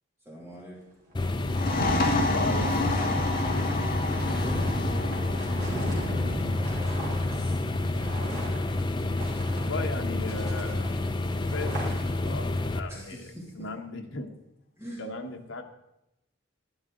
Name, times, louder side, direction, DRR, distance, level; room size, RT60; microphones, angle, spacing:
voice 1, 0.2-0.8 4.4-7.6 12.9-13.6 14.8-15.0, equal, 15° right, -4 dB, 2.6 m, -43 dB
sound 1, 0.8-0.9 1.1-10.0 10.3-12.3, right 1 dB, 40° right, 4.0 m, -39 dB
sound 2, 1.1-12.8, left 2 dB, 20° left, 0.5 m, -29 dB
sound 3, 1.4-8.8, left 2 dB, 45° left, 1.5 m, -31 dB
voice 2, 2.3-3.3 9.5-10.9 11.4-12.0 12.2-14.3 15.0-15.6, left 2 dB, 65° left, 4 dB, 1.2 m, -36 dB
12.0 x 11.5 x 3.8 m, 0.89 s
head